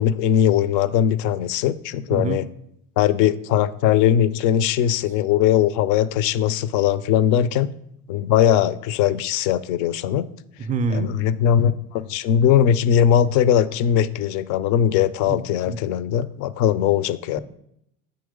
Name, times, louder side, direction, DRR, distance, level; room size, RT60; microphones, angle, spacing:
voice 1, 0.0-2.5 3.0-7.7 8.1-10.3 10.9-17.4, left 10 dB, 45° left, 16 dB, 0.4 m, -20 dB
voice 2, 2.1-2.4 10.6-11.1 15.3-15.4 15.7-15.8, right 4 dB, 20° right, 10 dB, 0.4 m, -25 dB
8.8 x 3.1 x 5.0 m, 0.77 s
hypercardioid pair, 85°, 45 cm